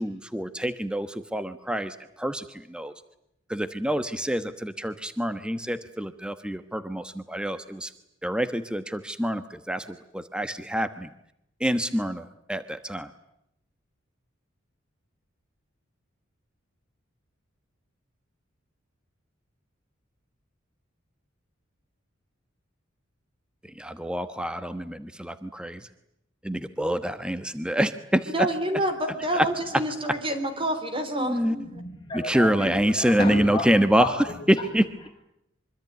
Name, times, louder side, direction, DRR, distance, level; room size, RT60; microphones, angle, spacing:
voice 1, 0.0-2.9 3.5-7.9 8.2-11.1 11.6-13.1 23.6-25.9 26.4-28.5 29.3-29.5 31.2-31.5 32.1-34.1 34.5-35.1, equal, 5° right, 10 dB, 1.2 m, -26 dB
voice 2, 28.3-31.7, right 1 dB, 25° right, 8 dB, 3.5 m, -28 dB
voice 3, 31.6-33.7 34.0-34.7, left 2 dB, 25° left, 2 dB, 7.4 m, -32 dB
25.0 x 25.0 x 9.3 m, 0.79 s
head